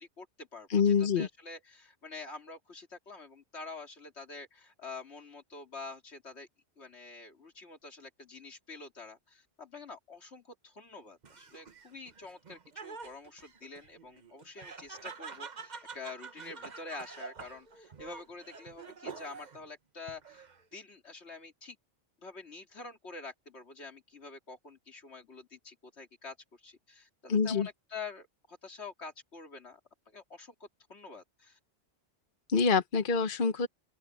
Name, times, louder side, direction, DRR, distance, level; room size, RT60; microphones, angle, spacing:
voice 1, 0.0-6.5 6.8-21.8 22.2-29.8 30.1-31.6, left 4 dB, 70° left, 2.9 m, -47 dB
voice 2, 0.7-1.3 27.3-27.7 32.5-33.7, left 5 dB, 50° left, 1.1 m, -26 dB
Laughter, 11.2-19.7 20.1-20.8, right 5 dB, 40° right, 1.1 m, -47 dB
open air
omnidirectional pair, 1.2 m